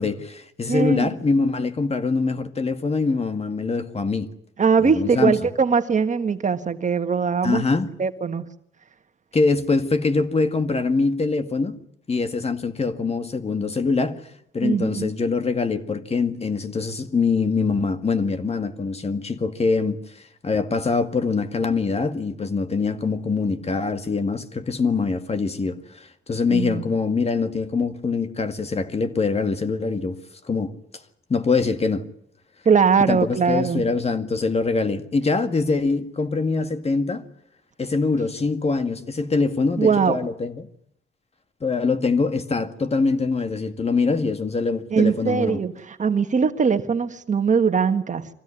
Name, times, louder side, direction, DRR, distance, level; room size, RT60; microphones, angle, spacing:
voice 1, 0.0-4.3 4.8-5.4 7.4-7.9 9.3-11.8 12.1-14.2 14.5-20.0 20.4-30.2 30.5-30.7 31.3-32.1 33.1-37.2 37.8-40.7 41.6-45.6, left 4 dB, 30° left, 2.0 m, -23 dB
voice 2, 0.7-1.1 4.6-7.6 8.0-8.4 14.6-15.1 26.5-26.8 32.6-33.8 39.8-40.2 44.9-48.3, right 6 dB, 40° right, 1.6 m, -21 dB
23.5 x 16.0 x 10.0 m
cardioid pair, 90°, 20 cm